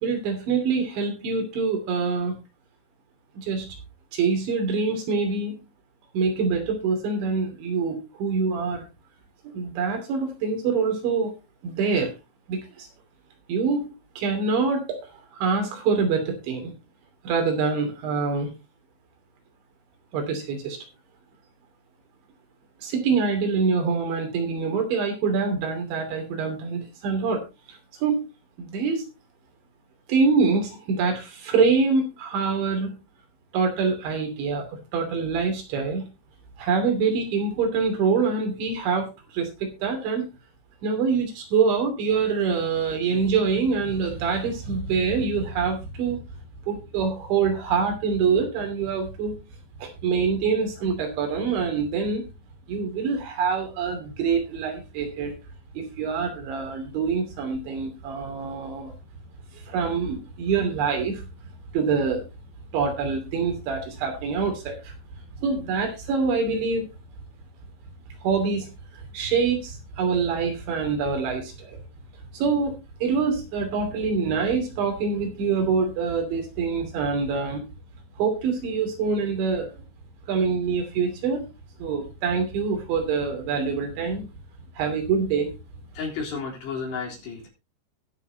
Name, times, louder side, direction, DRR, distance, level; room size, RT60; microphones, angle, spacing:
voice 1, 0.0-2.4 3.4-3.8 4.1-5.6 6.1-8.8 9.4-11.3 11.6-12.1 12.5-12.9 13.5-15.0 15.4-16.7 17.3-18.5 20.1-20.8 22.8-27.4 28.0-28.2 28.6-29.1 30.1-33.0 33.5-36.1 36.6-40.3 40.8-46.2 46.7-49.4 49.8-52.2 52.7-55.4 55.8-58.9 59.5-61.3 61.7-62.3 62.7-64.9 65.4-66.9 68.2-68.7 68.9-71.8 72.3-77.7 78.2-79.7 80.3-81.5 81.8-84.3 84.8-85.5, right 5 dB, 85° right, 4 dB, 5.2 m, -25 dB
voice 2, 85.9-87.5, left 5 dB, 70° left, -2 dB, 5.8 m, -32 dB
21.5 x 7.2 x 2.9 m, 0.27 s
omnidirectional pair, 5.2 m